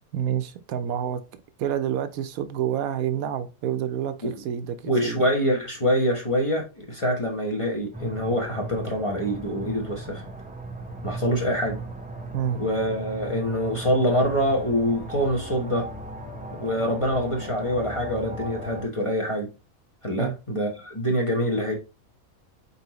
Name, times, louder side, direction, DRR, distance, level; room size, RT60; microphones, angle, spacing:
voice 1, 0.1-1.2 1.6-5.2 12.3-12.6 20.2-20.4, right 9 dB, 80° right, 1.0 m, -28 dB
voice 2, 4.8-10.2 11.0-11.8 12.6-15.9 16.6-19.5 20.0-21.7, equal, 25° left, 0.9 m, -25 dB
sound 1, 7.9-18.9, right 2 dB, 15° right, 0.3 m, -37 dB
4.4 x 4.0 x 3.0 m
omnidirectional pair, 1.5 m